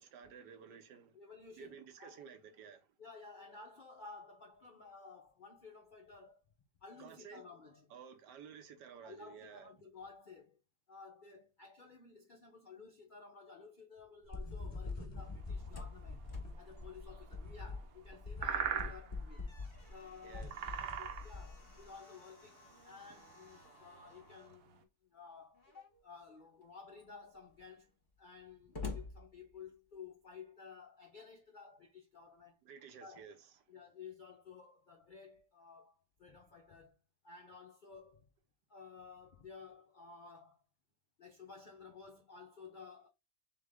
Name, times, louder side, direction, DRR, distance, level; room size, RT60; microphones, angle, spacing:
voice 1, 0.0-1.2 1.6-2.9 7.0-7.4 7.9-9.7 20.2-20.5 32.6-33.3, right 7 dB, 85° right, 1.4 m, -53 dB
voice 2, 1.1-2.3 3.0-6.4 6.8-7.9 9.0-10.6 10.9-16.2 16.6-19.5 19.9-27.9 28.2-32.6 33.0-33.3 33.7-37.0 37.2-38.3 38.7-40.6 41.2-43.1, left 5 dB, 60° left, 0.5 m, -54 dB
sound 1, 14.3-21.8, left 3 dB, 20° left, 1.3 m, -44 dB
sound 2, 15.2-24.8, right 8 dB, 65° right, 1.1 m, -44 dB
Slam, 15.6-18.1 18.4-18.5 19.0-24.6 25.5-26.1 26.6-26.7 26.9-30.0, left 4 dB, 35° left, 1.0 m, -52 dB
3.7 x 3.5 x 3.4 m
omnidirectional pair, 1.8 m